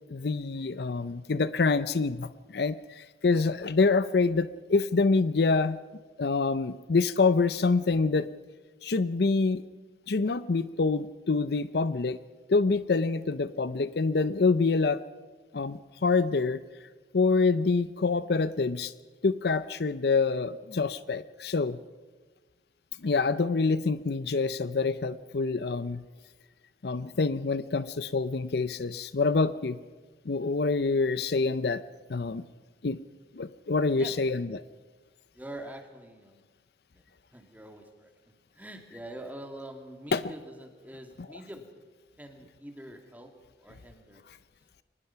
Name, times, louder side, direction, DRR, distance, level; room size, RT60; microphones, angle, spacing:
voice 1, 0.1-5.8 6.2-8.3 8.8-9.6 10.1-12.2 12.5-15.0 15.5-16.6 17.1-18.9 19.2-21.8 23.0-26.0 26.8-29.8 30.3-31.8 32.1-32.4 32.8-33.0 33.3-34.6 40.1-40.2, left 4 dB, 60° left, 15 dB, 0.6 m, -26 dB
voice 2, 35.3-36.4 36.9-38.1 38.5-41.7 42.2-43.3 43.6-44.2, right 1 dB, 10° right, 4 dB, 2.2 m, -45 dB
23.5 x 19.5 x 5.8 m, 1.3 s
head